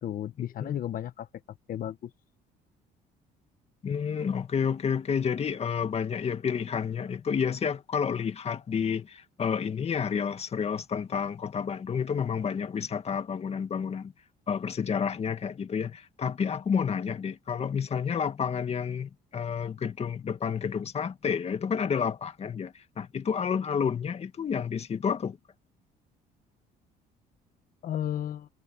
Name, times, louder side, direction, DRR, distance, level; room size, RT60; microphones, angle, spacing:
voice 1, 0.0-1.3 1.7-2.1 27.8-28.5, left 11 dB, 55° left, 1.3 m, -33 dB
voice 2, 3.8-14.1 14.5-25.4, left 7 dB, 40° left, 2.0 m, -30 dB
cardioid pair, 110°, 17 cm